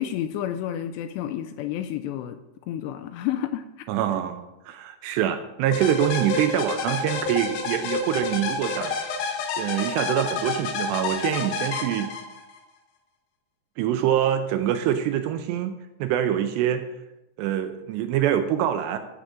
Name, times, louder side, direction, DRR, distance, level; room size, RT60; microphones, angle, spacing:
voice 1, 0.0-2.4 2.7-3.9, left 11 dB, 85° left, 9 dB, 2.5 m, -30 dB
voice 2, 3.9-9.0 9.6-12.1 13.8-16.8 17.4-19.0, right 10 dB, 80° right, 9 dB, 2.6 m, -25 dB
sound 1, 5.7-12.6, left 4 dB, 65° left, 2.6 m, -29 dB
15.5 x 7.3 x 3.7 m, 0.97 s
omnidirectional pair, 5.3 m